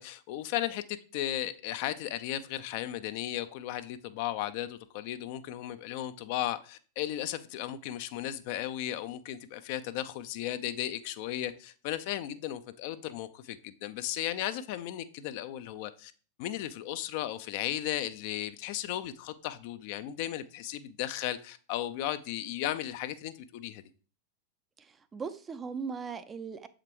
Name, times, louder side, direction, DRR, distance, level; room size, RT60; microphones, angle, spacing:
voice 1, 0.0-16.1 16.4-23.8, left 12 dB, 50° left, 0.4 m, -35 dB
voice 2, 24.8-26.7, right 5 dB, 20° right, 0.4 m, -39 dB
7.3 x 5.0 x 3.0 m
figure-of-eight pair, 90°, 0 cm